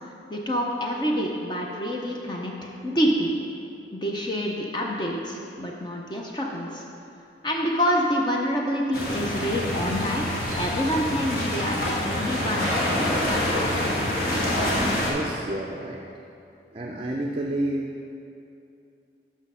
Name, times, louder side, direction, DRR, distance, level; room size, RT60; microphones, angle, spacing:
voice 1, 0.3-3.3 3.9-6.8 7.4-10.3 10.6-12.7 13.1-13.7, equal, 25° left, -1 dB, 0.5 m, -27 dB
sound 1, 8.9-15.1, left 1 dB, 50° left, 1.4 m, -26 dB
voice 2, 15.0-16.1 16.7-18.1, right 1 dB, 30° right, 0 dB, 0.4 m, -30 dB
6.2 x 6.2 x 5.4 m, 2.7 s
head